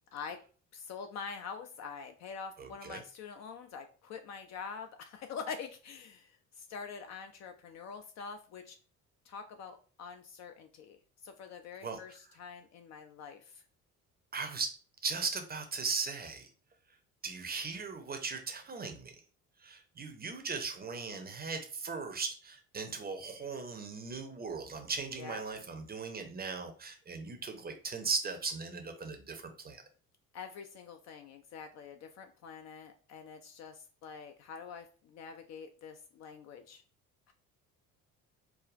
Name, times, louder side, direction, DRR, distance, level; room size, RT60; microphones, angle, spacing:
voice 1, 0.7-8.8 9.2-13.6 25.2-25.4 30.3-36.8 37.3-37.4, left 6 dB, 40° left, 6 dB, 0.4 m, -45 dB
voice 2, 2.6-3.0 11.8-12.0 14.3-14.7 15.0-16.5 17.2-19.1 19.6-29.8, right 4 dB, 20° right, 5 dB, 0.6 m, -38 dB
4.7 x 2.3 x 2.4 m, 0.38 s
figure-of-eight pair, 55°, 45 cm